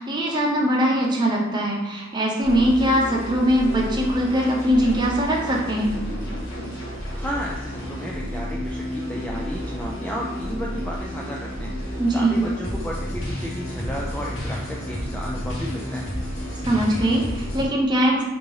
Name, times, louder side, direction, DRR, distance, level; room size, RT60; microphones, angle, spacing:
voice 1, 0.0-5.9 12.0-12.3 16.6-18.2, equal, 20° right, -2 dB, 0.8 m, -21 dB
sound 1, 2.4-17.7, equal, 70° left, 1.4 m, -31 dB
voice 2, 7.1-16.1, equal, 5° left, -2 dB, 0.3 m, -33 dB
3.8 x 2.9 x 3.9 m, 1.2 s
head